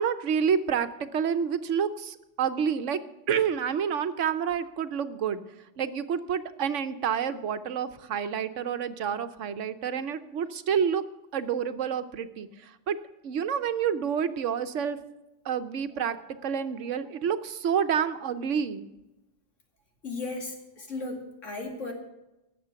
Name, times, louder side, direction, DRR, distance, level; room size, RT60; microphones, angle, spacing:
voice 1, 0.0-3.0 3.3-11.1 11.3-13.0 13.2-15.0 15.4-18.9, right 7 dB, 80° right, 10 dB, 1.2 m, -29 dB
voice 2, 20.0-21.9, left 3 dB, 90° left, 1 dB, 2.7 m, -36 dB
18.5 x 7.3 x 5.8 m, 0.98 s
omnidirectional pair, 1.3 m